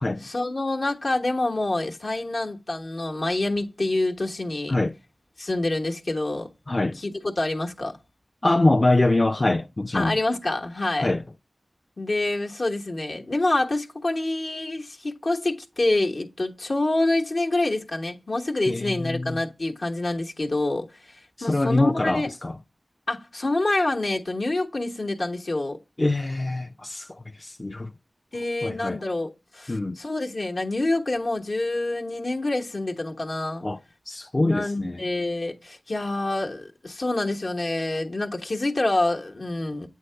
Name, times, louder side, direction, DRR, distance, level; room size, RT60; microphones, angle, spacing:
voice 1, 0.2-4.7 5.4-6.5 6.9-8.0 9.9-11.1 12.0-22.3 23.1-25.8 28.3-33.6 34.3-39.9, left 2 dB, 65° left, 1.1 m, -27 dB
voice 2, 6.7-7.0 8.4-10.2 11.0-11.2 18.7-19.4 21.4-22.5 26.0-27.9 28.6-29.0 29.7-30.0 33.6-33.8 34.1-35.0, left 2 dB, 40° left, 0.5 m, -24 dB
8.3 x 3.7 x 3.3 m
cardioid pair, 45°, 0 cm